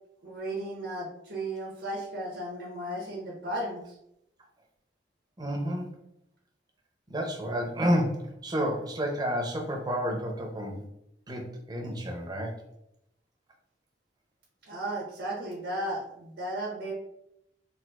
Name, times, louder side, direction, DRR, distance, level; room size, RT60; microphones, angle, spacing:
voice 1, 0.2-4.0 14.7-16.9, right 1 dB, 90° right, -4 dB, 0.8 m, -35 dB
voice 2, 5.4-5.9 7.1-10.9 11.3-12.6, equal, 25° right, 1 dB, 0.5 m, -30 dB
4.0 x 2.4 x 2.3 m, 0.79 s
head